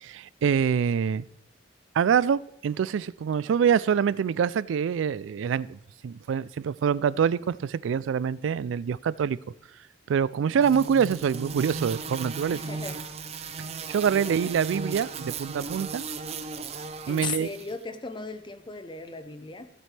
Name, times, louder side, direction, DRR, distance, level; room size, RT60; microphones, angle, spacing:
voice 1, 0.0-1.2 1.9-5.8 6.0-9.4 10.1-12.6 13.6-16.0 17.1-17.5, right 7 dB, 80° right, 20 dB, 0.3 m, -25 dB
sound 1, 10.6-17.7, right 4 dB, 35° right, 0.6 m, -36 dB
voice 2, 12.5-13.0 13.6-13.7 14.1-14.5 17.1-19.7, left 4 dB, 25° left, 10 dB, 0.7 m, -37 dB
15.5 x 7.5 x 3.3 m, 0.78 s
head